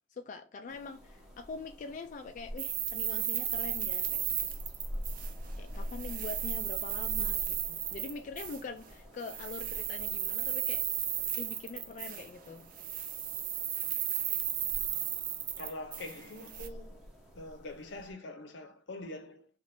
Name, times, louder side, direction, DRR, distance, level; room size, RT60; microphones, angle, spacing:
voice 1, 0.1-4.3 5.6-10.9 11.4-12.7, left 4 dB, 45° left, 0.3 m, -44 dB
sound 1, 0.7-18.1, equal, 5° right, 0.8 m, -46 dB
sound 2, 2.6-5.6 5.8-8.6 9.2-12.5 12.7-16.7, right 10 dB, 50° right, 0.4 m, -34 dB
voice 2, 15.6-17.0 17.3-19.5, left 2 dB, 85° left, 0.6 m, -44 dB
2.6 x 2.5 x 3.3 m
head